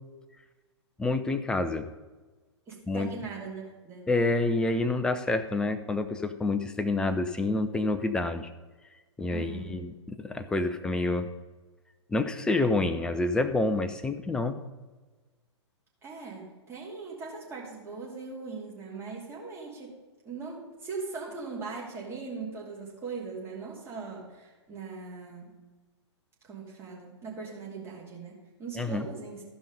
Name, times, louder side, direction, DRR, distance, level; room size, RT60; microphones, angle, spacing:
voice 1, 1.0-1.9 2.9-3.1 4.1-8.5 9.2-11.3 12.1-14.6 28.8-29.1, left 2 dB, 5° left, 10 dB, 0.4 m, -28 dB
voice 2, 2.7-4.1 9.3-9.7 16.0-19.9 20.2-25.6 26.4-29.4, right 4 dB, 15° right, -4 dB, 2.7 m, -40 dB
14.5 x 5.4 x 5.0 m, 1.3 s
figure-of-eight pair, 115°, 15 cm